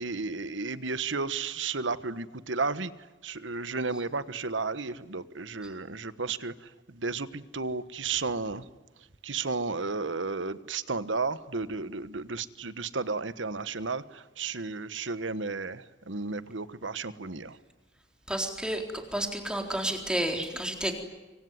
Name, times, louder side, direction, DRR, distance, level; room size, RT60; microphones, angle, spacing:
voice 1, 0.0-2.9 3.2-6.5 6.9-8.6 9.2-17.6, right 4 dB, 90° right, 14 dB, 1.3 m, -33 dB
voice 2, 18.3-18.8 19.1-20.9, right 1 dB, 5° right, 3 dB, 3.9 m, -30 dB
25.0 x 24.5 x 9.6 m, 1.2 s
head